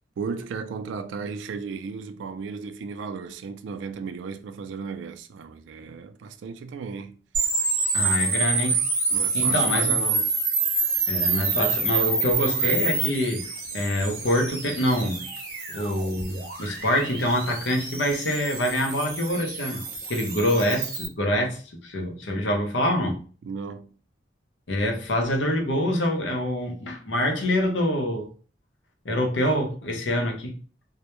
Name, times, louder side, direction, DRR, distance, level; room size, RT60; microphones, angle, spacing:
voice 1, 0.2-7.2 9.1-10.3 23.4-23.9, right 5 dB, 85° right, 0.3 m, -35 dB
sound 1, 7.3-21.1, right 4 dB, 55° right, 0.7 m, -27 dB
voice 2, 7.9-8.8 9.3-9.9 11.1-13.4 13.7-15.4 15.7-19.8 20.1-23.2 24.7-28.3 29.0-30.5, left 1 dB, 80° left, 0.6 m, -25 dB
2.1 x 2.0 x 2.9 m
head